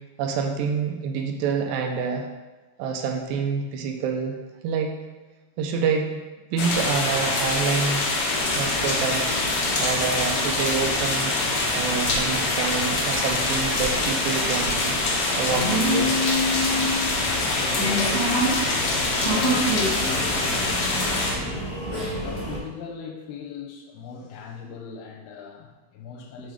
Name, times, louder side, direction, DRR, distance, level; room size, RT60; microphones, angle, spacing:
voice 1, 0.2-2.3 2.8-4.4 4.6-5.0 5.6-6.2 6.5-8.0 8.6-9.3 9.8-15.0 15.4-16.2, right 6 dB, 85° right, 4 dB, 2.3 m, -27 dB
sound 1, 6.6-21.3, left 2 dB, 65° left, 1.8 m, -25 dB
sound 2, 8.3-22.6, equal, 20° left, 0.7 m, -30 dB
voice 2, 17.3-21.7 22.2-26.5, left 5 dB, 90° left, 1 dB, 2.6 m, -39 dB
6.5 x 3.9 x 4.9 m, 1.2 s
omnidirectional pair, 4.2 m